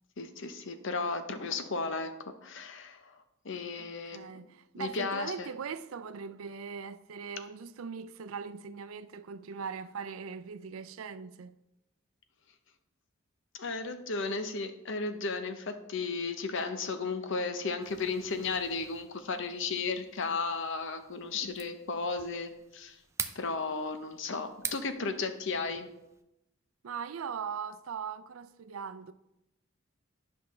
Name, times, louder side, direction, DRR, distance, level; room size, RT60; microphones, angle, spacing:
voice 1, 0.2-2.1 2.4-3.0 3.4-4.5 4.8-5.5 13.5-23.0 23.3-25.9, left 4 dB, 65° left, 0.8 m, -34 dB
voice 2, 3.8-11.5 26.8-29.1, right 6 dB, 85° right, 0.4 m, -40 dB
sound 1, 17.8-26.2, right 5 dB, 15° right, 0.4 m, -45 dB
10.5 x 5.7 x 3.2 m
head